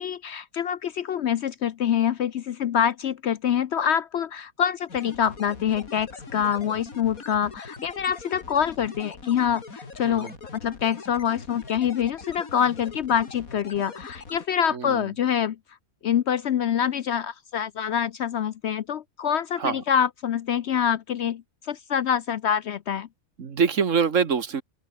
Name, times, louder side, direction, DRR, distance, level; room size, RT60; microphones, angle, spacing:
voice 1, 0.0-15.6 16.0-21.4 21.7-23.1, left 8 dB, 60° left, 0.8 m, -25 dB
sound 1, 4.9-14.5, left 3 dB, 75° left, 3.6 m, -42 dB
voice 2, 14.7-15.0 19.6-19.8 23.4-24.6, right 6 dB, 60° right, 1.8 m, -24 dB
open air
omnidirectional pair, 1.5 m